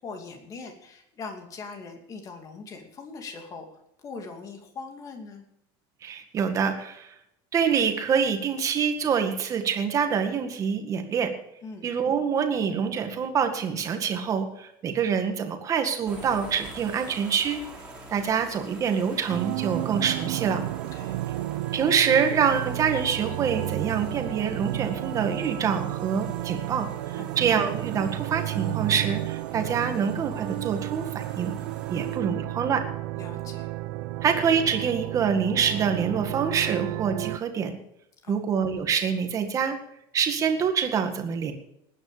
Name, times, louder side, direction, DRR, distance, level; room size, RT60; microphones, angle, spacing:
voice 1, 0.0-5.4 11.6-11.9 20.9-21.2 27.2-27.4 33.2-33.7 38.2-38.5, left 4 dB, 25° left, 5 dB, 2.6 m, -41 dB
voice 2, 6.0-7.1 7.5-11.3 11.8-17.6 18.1-20.6 21.7-31.5 31.9-32.9 34.2-37.8 38.3-39.8 40.1-41.5, right 7 dB, 25° right, 6 dB, 1.9 m, -26 dB
sound 1, 16.0-32.2, right 2 dB, 5° right, 3.5 m, -47 dB
sound 2, 19.3-37.4, right 17 dB, 90° right, 0.7 m, -32 dB
19.5 x 9.8 x 5.1 m, 0.80 s
cardioid pair, 170°, 13 cm